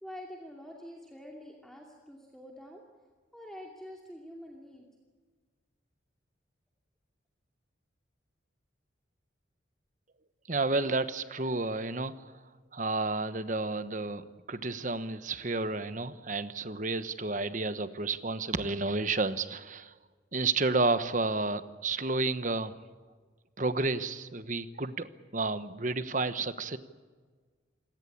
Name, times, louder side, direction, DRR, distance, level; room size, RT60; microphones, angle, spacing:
voice 1, 0.0-2.8 3.3-4.9, equal, ahead, -1 dB, 2.5 m, -46 dB
voice 2, 10.5-12.1 12.7-19.9 20.3-22.7 23.6-25.1 25.3-26.8, right 3 dB, 40° right, 12 dB, 1.1 m, -31 dB
28.0 x 18.0 x 8.7 m, 1.5 s
head